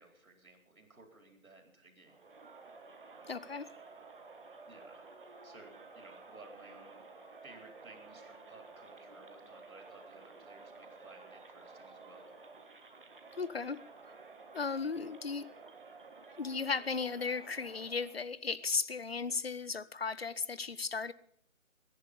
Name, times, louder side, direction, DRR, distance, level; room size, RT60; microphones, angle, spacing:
voice 1, 0.0-2.2 4.7-5.0 5.4-7.0 7.4-12.4, right 2 dB, 80° right, 4.3 m, -57 dB
Crowd, 2.0-18.3, right 3 dB, 40° right, 1.4 m, -53 dB
voice 2, 3.3-3.7 13.4-13.8 14.5-15.5 16.4-21.1, left 4 dB, 45° left, 0.6 m, -35 dB
20.5 x 10.5 x 5.4 m
figure-of-eight pair, 165°, 41 cm